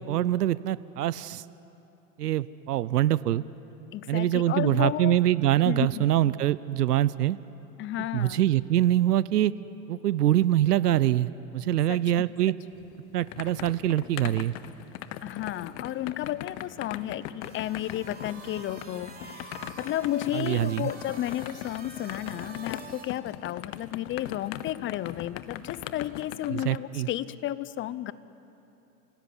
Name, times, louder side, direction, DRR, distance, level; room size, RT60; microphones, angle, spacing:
voice 1, 0.0-1.4 2.2-3.4 4.1-7.4 8.1-9.5 9.9-12.5 13.1-14.5 20.3-20.9 26.5-27.1, right 13 dB, 85° right, 18 dB, 0.7 m, -24 dB
voice 2, 3.9-5.1 5.6-6.3 7.8-8.4 11.9-12.0 15.2-28.1, left 13 dB, 25° left, 17 dB, 0.7 m, -32 dB
sound 1, 12.7-26.8, left 13 dB, 45° left, 1.1 m, -40 dB
sound 2, 17.4-23.1, right 3 dB, 20° right, 3.6 m, -47 dB
27.5 x 16.5 x 9.9 m, 2.9 s
hypercardioid pair, 105°, 46 cm